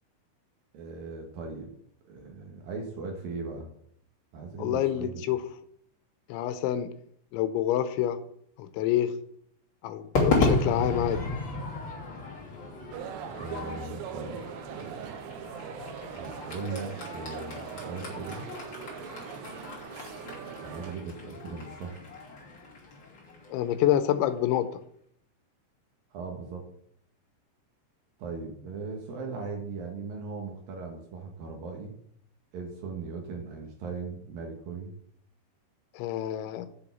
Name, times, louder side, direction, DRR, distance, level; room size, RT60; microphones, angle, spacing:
voice 1, 0.7-1.7 2.0-3.7 4.3-5.2 13.3-15.2 16.1-18.4 20.6-22.0 26.1-26.6 28.2-31.9 32.5-34.9, right 4 dB, 65° right, 1 dB, 2.7 m, -38 dB
voice 2, 4.6-5.4 6.3-6.9 7.3-8.2 8.6-9.1 9.8-11.3 23.5-24.7 35.9-36.7, left 11 dB, 90° left, 11 dB, 3.1 m, -27 dB
Crowd / Fireworks, 10.1-24.5, left 3 dB, 30° left, 2.9 m, -34 dB
sound 1, 12.9-20.9, right 9 dB, 80° right, 3.1 m, -41 dB
8.0 x 6.9 x 7.1 m, 0.67 s
omnidirectional pair, 5.4 m